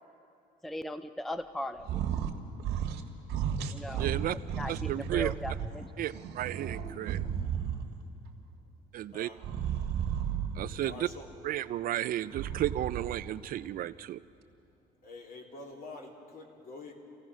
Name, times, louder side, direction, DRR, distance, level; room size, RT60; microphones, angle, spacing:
voice 1, 0.6-2.0 3.7-4.1 4.6-5.9, left 1 dB, ahead, 11 dB, 0.5 m, -38 dB
sound 1, 1.8-2.3 2.6-3.0 3.3-5.7 6.1-8.0 9.4-10.8 12.2-13.3, right 8 dB, 85° right, 1.5 m, -33 dB
voice 2, 4.0-4.4 4.7-5.3 6.0-7.2 8.9-9.3 10.6-11.1 11.4-14.2, right 13 dB, 60° right, 15 dB, 0.5 m, -33 dB
voice 3, 10.8-11.3 15.0-17.0, left 3 dB, 55° left, 0 dB, 3.2 m, -46 dB
27.0 x 15.5 x 6.2 m, 2.7 s
cardioid pair, 110°, 17 cm